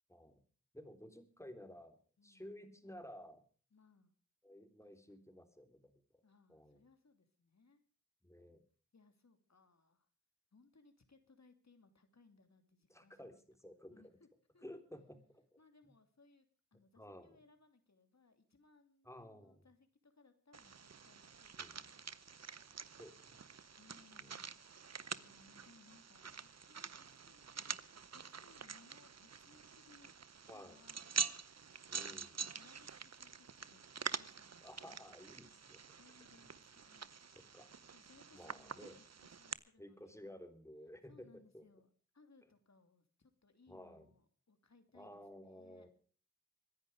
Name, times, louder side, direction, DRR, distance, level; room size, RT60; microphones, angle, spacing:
voice 1, 0.1-0.4 0.7-2.0 2.2-3.4 4.4-6.0 6.5-6.8 8.2-8.6 12.9-13.3 13.6-14.2 14.6-15.6 17.0-17.4 19.0-19.7 21.6-21.9 23.0-23.4 24.2-24.4 30.5-30.8 31.9-32.4 34.6-35.8 37.5-37.7 38.3-39.0 39.8-41.6 43.7-44.1 44.9-45.9, left 1 dB, 10° left, 7 dB, 3.5 m, -54 dB
voice 2, 2.2-2.5 3.7-4.1 4.8-5.2 6.2-7.8 8.9-10.1 10.5-13.4 13.9-14.3 14.5-14.6 15.6-16.5 16.7-22.0 23.8-24.6 25.1-27.5 28.1-30.1 30.5-31.3 32.0-33.9 34.2-35.1 35.9-37.6 37.9-39.0 39.4-40.3 41.1-41.9 42.1-45.9, left 3 dB, 65° left, 8 dB, 2.9 m, -67 dB
sound 1, 20.5-39.5, right 6 dB, 60° right, 0.9 m, -46 dB
24.0 x 10.5 x 4.9 m, 0.42 s
cardioid pair, 45°, 29 cm